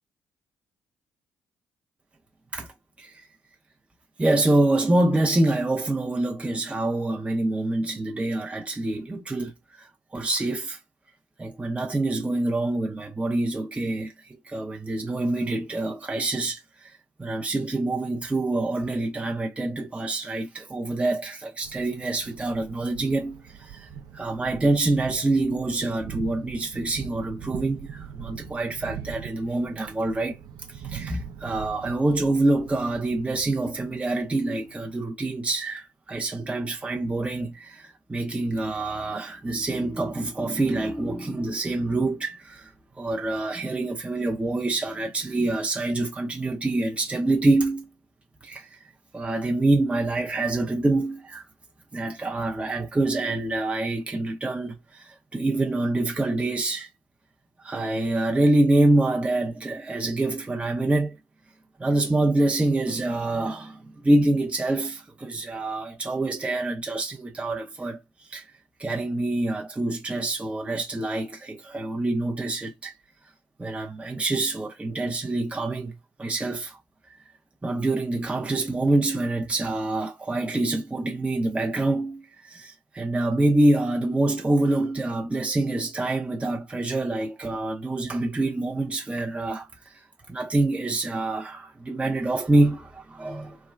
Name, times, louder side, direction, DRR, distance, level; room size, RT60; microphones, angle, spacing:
voice 1, 4.2-10.8 11.4-14.1 14.4-23.9 24.1-30.4 30.7-42.7 43.0-47.9 48.4-48.9 49.1-51.5 51.9-56.9 57.6-61.2 61.8-68.4 68.8-72.9 73.6-76.8 77.6-93.6, right 2 dB, 15° right, 0.6 m, -26 dB
Thunder, 21.6-35.0, right 8 dB, 65° right, 0.5 m, -42 dB
3.3 x 2.2 x 2.2 m
hypercardioid pair, 55°, 7 cm